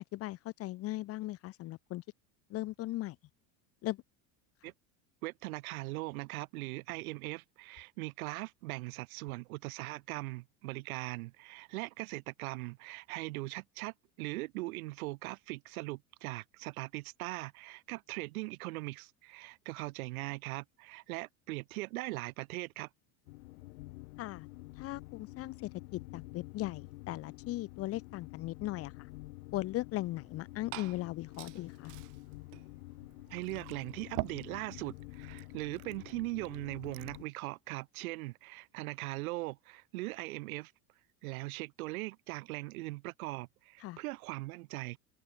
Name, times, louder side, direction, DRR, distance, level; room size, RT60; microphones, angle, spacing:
voice 1, 0.0-2.0 2.5-3.2 3.8-4.0 24.2-24.5 24.8-25.5 25.9-29.1 29.5-31.9 43.8-44.0, left 17 dB, 35° left, 2.1 m, -38 dB
voice 2, 5.2-22.9 33.3-40.7 41.2-45.0, right 21 dB, 90° right, 3.6 m, -40 dB
sound 1, 23.3-37.2, left 21 dB, 85° left, 3.9 m, -49 dB
Glass / Fill (with liquid), 30.2-37.3, right 28 dB, 45° right, 2.0 m, -47 dB
cardioid pair, 180°, 42 cm